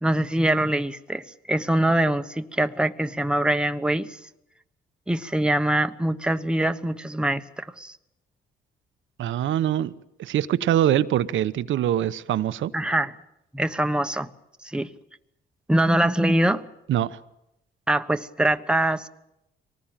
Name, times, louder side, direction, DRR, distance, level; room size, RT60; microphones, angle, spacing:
voice 1, 0.0-4.2 5.1-8.0 12.7-13.1 13.5-14.3 14.6-14.9 15.7-16.7 17.9-19.1, right 1 dB, 5° right, 1.1 m, -23 dB
voice 2, 9.2-9.9 10.2-12.7 16.9-17.2, right 11 dB, 75° right, 1.0 m, -23 dB
24.0 x 19.0 x 9.1 m
cardioid pair, 90°, 20 cm